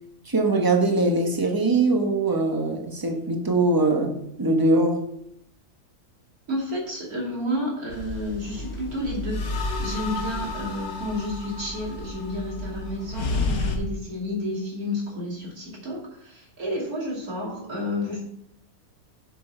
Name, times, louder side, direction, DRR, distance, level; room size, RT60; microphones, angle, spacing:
voice 1, 0.3-5.0, right 2 dB, 15° right, 2 dB, 1.2 m, -22 dB
voice 2, 6.5-9.4 9.8-18.2, left 1 dB, 75° right, -2 dB, 3.2 m, -31 dB
sound 1, 7.9-13.8, left 3 dB, 80° left, 1.7 m, -31 dB
10.5 x 6.4 x 4.4 m, 0.74 s
omnidirectional pair, 1.5 m